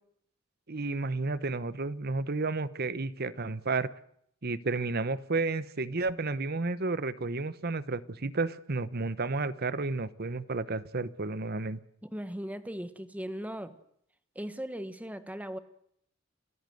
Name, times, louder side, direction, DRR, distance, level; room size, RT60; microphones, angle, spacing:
voice 1, 0.7-3.9 4.4-11.8, right 3 dB, 50° right, 16 dB, 1.0 m, -32 dB
voice 2, 12.1-13.7 14.3-15.6, equal, 10° right, 11 dB, 1.5 m, -38 dB
28.5 x 14.0 x 7.9 m, 0.70 s
head